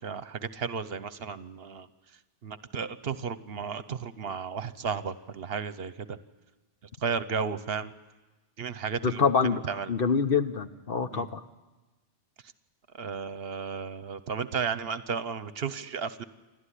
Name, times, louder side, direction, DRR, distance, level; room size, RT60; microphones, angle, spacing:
voice 1, 0.0-1.9 2.4-6.2 7.0-7.9 8.6-9.9 11.1-11.3 13.0-16.2, right 6 dB, 65° right, 14 dB, 1.1 m, -34 dB
voice 2, 9.0-9.6 9.9-11.4, left 5 dB, 60° left, 9 dB, 1.1 m, -25 dB
28.5 x 12.5 x 10.0 m, 1.2 s
omnidirectional pair, 1.1 m